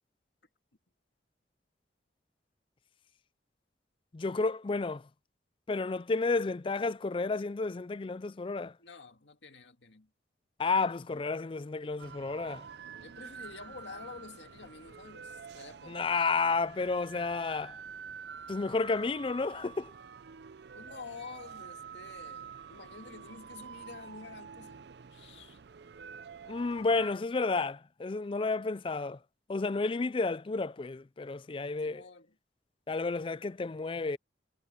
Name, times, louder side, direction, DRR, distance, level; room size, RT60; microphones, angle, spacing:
voice 1, 4.1-5.0 5.7-8.7 10.6-12.6 15.9-17.8 18.5-19.9 26.5-29.2 29.5-32.0 32.9-34.2, left 3 dB, 30° left, 0.4 m, -31 dB
voice 2, 8.8-10.1 13.0-16.1 20.7-25.6 31.8-32.4, left 4 dB, 75° left, 2.1 m, -49 dB
sound 1, 12.0-27.1, right 6 dB, 65° right, 0.5 m, -48 dB
head